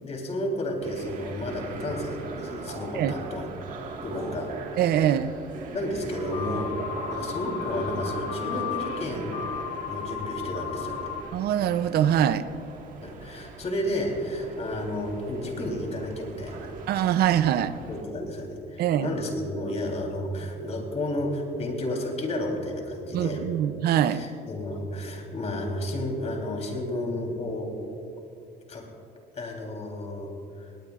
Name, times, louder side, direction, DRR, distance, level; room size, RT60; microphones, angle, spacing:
voice 1, 0.0-3.5 4.0-4.5 5.7-6.7 7.1-9.5 9.9-11.1 13.0-16.7 17.8-23.5 24.1-27.7 28.7-28.9 29.3-30.3 30.6-30.7, left 1 dB, 40° left, 1 dB, 3.6 m, -32 dB
sound 1, 0.8-18.0, right 4 dB, 50° right, 1.7 m, -41 dB
voice 2, 4.8-5.3 11.3-12.5 16.9-17.7 18.8-19.1 23.1-24.2, right 10 dB, 70° right, 13 dB, 0.6 m, -23 dB
sound 2, 6.1-11.2, left 9 dB, 70° left, 3.5 m, -35 dB
20.5 x 18.0 x 2.5 m, 2.8 s
cardioid pair, 110°, 17 cm